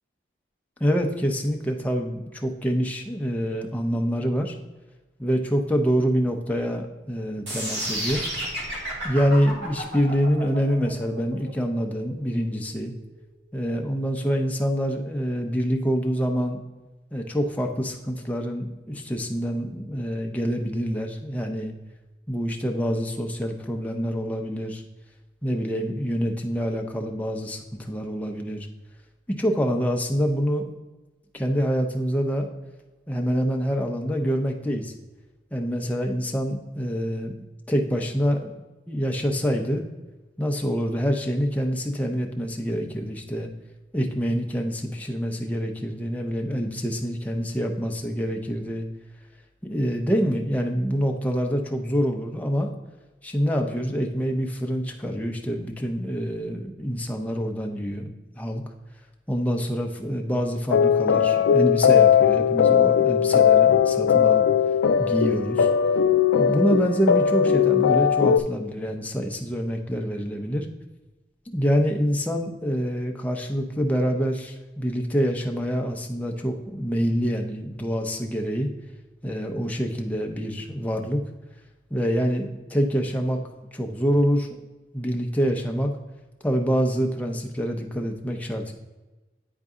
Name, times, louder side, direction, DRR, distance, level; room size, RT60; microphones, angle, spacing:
voice 1, 0.8-4.6 5.2-8.3 9.0-12.9 13.5-16.6 17.1-21.7 22.3-24.8 25.4-28.7 29.3-30.8 31.3-32.5 33.1-34.9 35.5-37.3 37.7-38.5 38.9-39.9 40.4-43.5 43.9-48.9 49.6-52.7 53.2-58.6 59.3-64.4 65.0-65.7 66.3-70.7 71.5-78.7 79.2-81.2 81.9-83.4 83.7-84.6 84.9-85.9 86.4-88.7, equal, 10° left, 2 dB, 0.5 m, -26 dB
sound 1, 7.5-13.5, right 1 dB, 70° right, 2.2 m, -32 dB
sound 2, 60.7-68.4, left 8 dB, 85° left, 0.4 m, -19 dB
9.5 x 3.9 x 3.6 m, 1.1 s
head